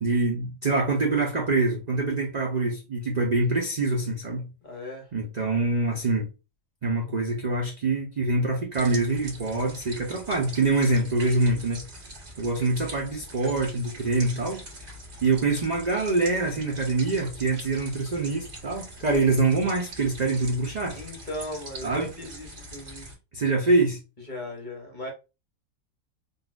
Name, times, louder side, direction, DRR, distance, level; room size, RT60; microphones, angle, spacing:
voice 1, 0.0-4.5 5.1-6.3 6.8-11.8 12.4-14.6 15.2-21.0 21.8-22.1 23.3-24.0, right 3 dB, 75° right, 0.4 m, -25 dB
voice 2, 4.6-5.1 20.9-23.1 24.3-25.1, left 1 dB, 40° left, 0.7 m, -37 dB
sound 1, 8.7-23.1, right 1 dB, 45° right, 1.5 m, -43 dB
3.9 x 2.4 x 2.4 m
omnidirectional pair, 1.6 m